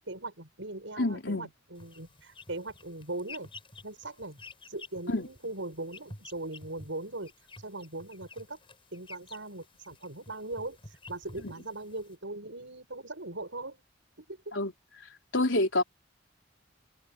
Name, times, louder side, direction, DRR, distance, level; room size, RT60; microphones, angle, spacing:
voice 1, 0.0-3.5 3.8-4.4 4.7-7.3 7.6-8.6 8.9-13.8 14.2-14.4, right 2 dB, 75° right, 7.4 m, -40 dB
voice 2, 1.0-1.5 5.1-5.3 11.4-11.5 14.5-14.7 15.3-15.8, left 2 dB, 75° left, 3.9 m, -27 dB
sound 1, 1.8-12.2, left 3 dB, 30° left, 7.6 m, -51 dB
head